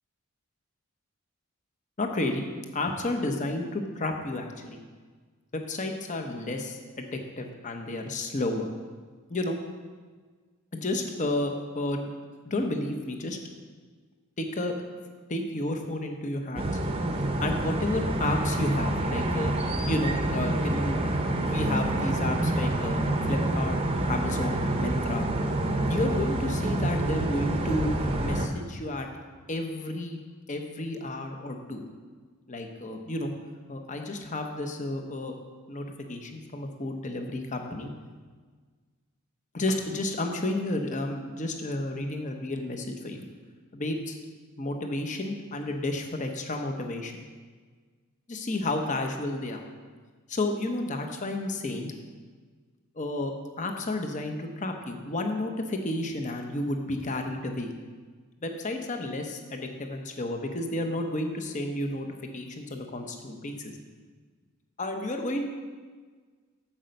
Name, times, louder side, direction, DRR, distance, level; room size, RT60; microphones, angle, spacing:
voice 1, 2.0-2.4 2.7-4.8 5.5-8.7 9.3-9.6 10.7-12.1 12.4-13.4 14.4-14.7 15.3-16.7 17.4-19.6 19.9-21.0 21.4-22.9 23.3-23.8 24.1-25.3 25.9-27.9 28.2-29.1 29.5-30.2 30.5-31.8 32.5-33.3 33.7-35.3 35.7-37.9 39.5-43.2 43.7-44.2 44.6-47.1 48.3-49.7 50.3-51.9 53.0-57.7 58.4-62.1 62.3-63.7 64.8-65.5, left 2 dB, 35° left, 4 dB, 0.9 m, -31 dB
sound 1, 16.6-28.5, right 1 dB, 25° right, 0.8 m, -27 dB
8.7 x 7.7 x 5.3 m, 1.5 s
head